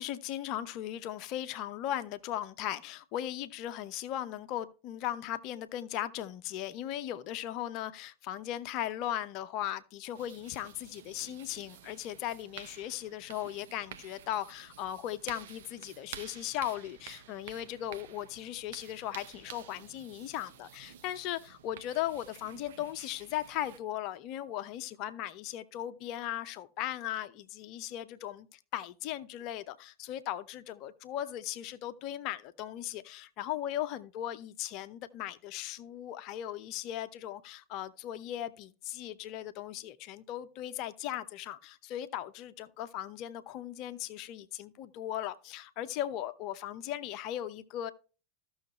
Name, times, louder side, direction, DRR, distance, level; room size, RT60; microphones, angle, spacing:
voice 1, 0.0-47.9, left 12 dB, 40° left, 0.7 m, -38 dB
sound 1, 10.1-23.8, right 9 dB, 55° right, 0.9 m, -51 dB
15.0 x 6.4 x 3.0 m
figure-of-eight pair, 90°, 0 cm